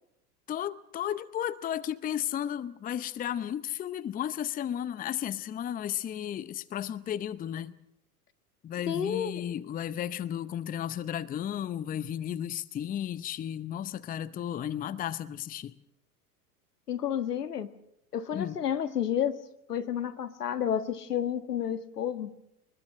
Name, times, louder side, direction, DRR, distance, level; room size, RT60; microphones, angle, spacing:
voice 1, 0.5-7.7 8.6-15.7 18.3-18.6, left 10 dB, 20° left, 0.7 m, -34 dB
voice 2, 8.9-9.4 16.9-17.7 18.1-19.4 19.7-22.3, left 9 dB, 80° left, 1.5 m, -30 dB
23.5 x 21.0 x 6.5 m
hypercardioid pair, 95°, 46 cm